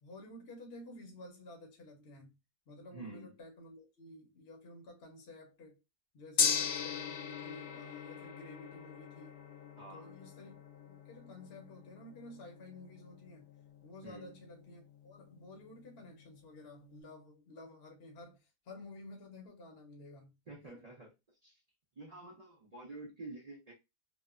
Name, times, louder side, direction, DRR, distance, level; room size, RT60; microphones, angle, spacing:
voice 1, 0.0-2.4 2.7-5.8 6.1-9.4 9.9-13.5 13.8-20.4 20.6-20.8, left 2 dB, 50° left, 0.8 m, -52 dB
voice 2, 2.9-3.3 9.8-10.1 14.0-14.4 20.5-21.6 22.0-23.7, right 2 dB, 60° right, 0.4 m, -49 dB
Gong, 6.4-16.6, left 6 dB, 90° left, 1.2 m, -40 dB
2.9 x 2.1 x 2.3 m
omnidirectional pair, 1.7 m